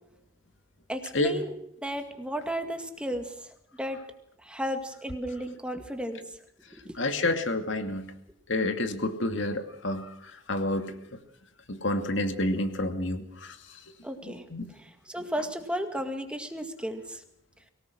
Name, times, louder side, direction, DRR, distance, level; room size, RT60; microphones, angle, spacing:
voice 1, 0.9-1.6 1.8-4.0 4.4-6.2 6.8-7.0 14.0-14.4 14.7-17.2, equal, 5° right, 6 dB, 2.0 m, -34 dB
voice 2, 7.0-8.1 8.5-10.1 10.5-10.9 11.7-13.5 14.3-14.6, left 1 dB, 70° left, 7 dB, 2.4 m, -29 dB
23.5 x 18.0 x 6.3 m, 0.77 s
head